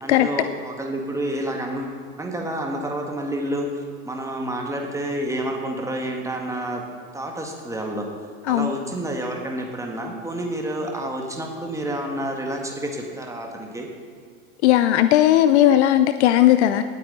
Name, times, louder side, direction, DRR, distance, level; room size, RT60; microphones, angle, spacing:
voice 1, 0.0-6.8 7.1-8.1 8.5-13.9, right 1 dB, 5° right, 1 dB, 2.1 m, -29 dB
voice 2, 14.6-16.8, left 13 dB, 55° left, 11 dB, 0.6 m, -16 dB
18.5 x 8.4 x 4.2 m, 2.2 s
figure-of-eight pair, 85°, 41 cm